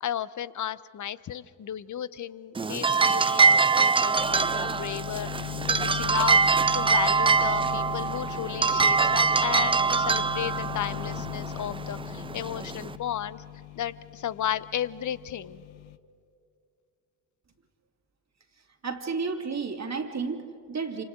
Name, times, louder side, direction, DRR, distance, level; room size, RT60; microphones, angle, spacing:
voice 1, 0.0-6.4 6.7-13.4 13.8-15.6, left 10 dB, 35° left, 17 dB, 0.8 m, -34 dB
sound 1, 2.6-13.0, right 5 dB, 10° right, 0.5 m, -24 dB
sound 2, 4.1-16.0, left 18 dB, 65° left, 0.9 m, -39 dB
voice 2, 18.8-21.0, right 4 dB, 30° right, 4 dB, 2.5 m, -32 dB
28.5 x 26.5 x 3.8 m, 2.5 s
figure-of-eight pair, 45°, 50 cm